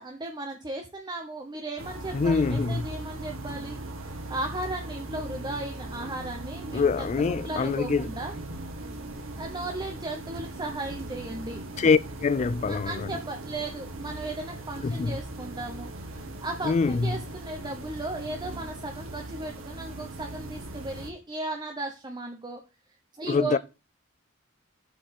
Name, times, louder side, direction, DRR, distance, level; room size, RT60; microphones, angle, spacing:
voice 1, 0.0-7.1 7.4-8.3 9.4-11.6 12.7-22.6 23.2-23.6, right 2 dB, 20° right, 0.9 m, -36 dB
sound 1, 1.8-21.1, right 2 dB, 90° right, 1.9 m, -39 dB
voice 2, 2.1-2.9 6.7-8.1 11.8-13.2 14.8-15.2 16.6-17.1 23.3-23.6, left 4 dB, 35° left, 0.3 m, -25 dB
8.1 x 4.2 x 6.4 m
head